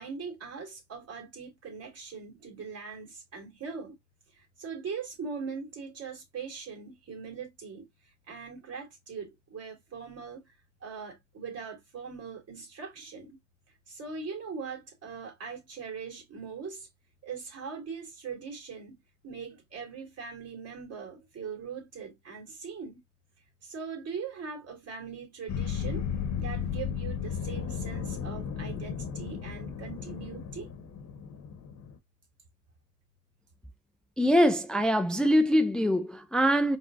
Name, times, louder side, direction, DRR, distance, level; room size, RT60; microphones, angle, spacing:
voice 1, 0.0-4.0 4.3-13.4 13.7-16.9 17.2-19.0 19.2-23.0 23.6-26.1 26.4-30.7, right 5 dB, 55° right, 2.8 m, -41 dB
sound 1, 25.5-32.0, left 7 dB, 70° left, 1.0 m, -35 dB
voice 2, 34.2-36.8, equal, 5° left, 0.5 m, -23 dB
4.8 x 3.4 x 2.6 m
cardioid pair, 90°, 30 cm